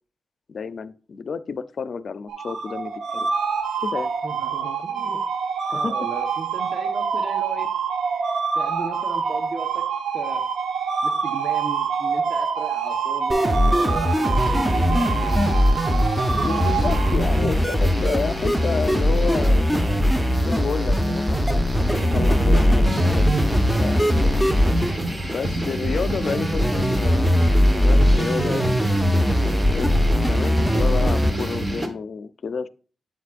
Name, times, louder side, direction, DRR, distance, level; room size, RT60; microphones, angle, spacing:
voice 1, 0.5-3.3 3.8-4.1 5.7-5.9 16.4-20.0 20.4-24.4 25.2-28.8 29.7-32.7, left 5 dB, 55° left, 14 dB, 0.6 m, -30 dB
sound 1, 2.3-17.6, right 6 dB, 85° right, 0.9 m, -26 dB
voice 2, 4.2-5.2 5.7-7.7 8.5-9.8 10.1-10.4 11.0-15.1 24.9-25.2, right 3 dB, 45° right, 6 dB, 1.1 m, -36 dB
sound 2, 13.3-31.3, equal, ahead, 0.8 m, -20 dB
sound 3, 14.3-31.9, right 1 dB, 20° right, 1.4 m, -28 dB
8.1 x 8.1 x 2.5 m, 0.38 s
wide cardioid pair, 140°, 0 cm